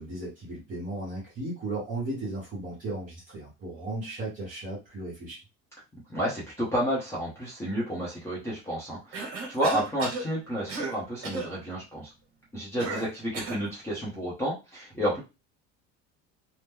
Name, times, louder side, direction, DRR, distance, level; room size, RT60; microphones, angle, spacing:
voice 1, 0.0-5.4, right 2 dB, 30° right, -5 dB, 1.0 m, -35 dB
voice 2, 6.1-12.1 12.5-15.2, equal, 10° left, -6 dB, 0.7 m, -31 dB
Cough, 9.1-10.3 10.7-11.0 11.2-11.5 12.8-13.7, right 3 dB, 50° right, 1.3 m, -34 dB
2.9 x 2.1 x 3.5 m, 0.27 s
cardioid pair, 175°, 29 cm